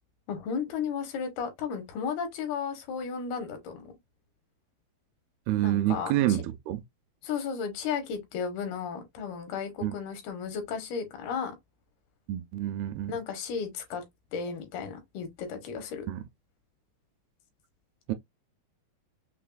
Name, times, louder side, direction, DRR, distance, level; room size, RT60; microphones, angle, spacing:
voice 1, 0.3-3.9 5.6-6.1 7.2-11.6 13.1-14.0 14.3-16.1, left 6 dB, 80° left, 2.8 m, -34 dB
voice 2, 5.5-6.8 9.8-9.9 12.3-13.1 16.1-16.2 18.1-18.2, right 14 dB, 85° right, 2.3 m, -28 dB
6.3 x 2.1 x 2.3 m
omnidirectional pair, 4.6 m